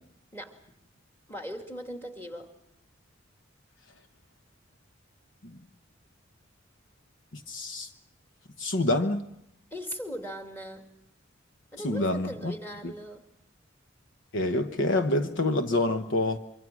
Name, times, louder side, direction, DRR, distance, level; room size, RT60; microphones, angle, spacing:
voice 1, 1.3-2.5 9.7-10.9 11.7-13.2, equal, 10° left, 2.6 m, -39 dB
voice 2, 7.3-7.9 8.6-9.2 11.8-12.5 12.8-12.9 14.3-16.4, left 2 dB, 65° left, 1.1 m, -27 dB
25.5 x 24.5 x 6.2 m
head